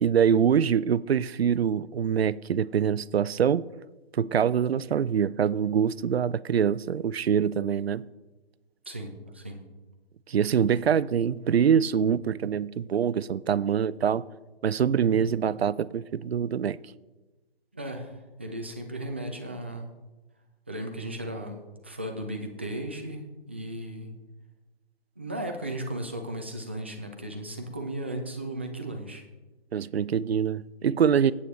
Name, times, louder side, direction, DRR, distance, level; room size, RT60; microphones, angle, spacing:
voice 1, 0.0-3.6 4.1-8.0 10.3-14.2 14.6-16.8 29.7-31.3, right 8 dB, 80° right, 0.5 m, -24 dB
voice 2, 8.9-9.6 17.7-19.9 20.7-24.1 25.2-29.2, right 1 dB, 10° right, 0.4 m, -36 dB
17.5 x 8.5 x 3.1 m
figure-of-eight pair, 150°, 31 cm